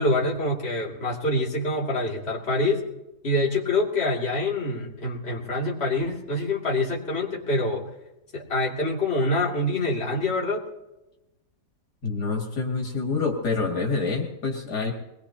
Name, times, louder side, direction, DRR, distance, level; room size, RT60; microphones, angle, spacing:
voice 1, 0.0-2.8 3.2-7.9 8.3-10.6, left 2 dB, 40° left, -4 dB, 2.9 m, -25 dB
voice 2, 12.0-14.9, left 4 dB, 90° left, 0 dB, 3.1 m, -27 dB
22.5 x 21.0 x 2.9 m, 0.96 s
omnidirectional pair, 1.7 m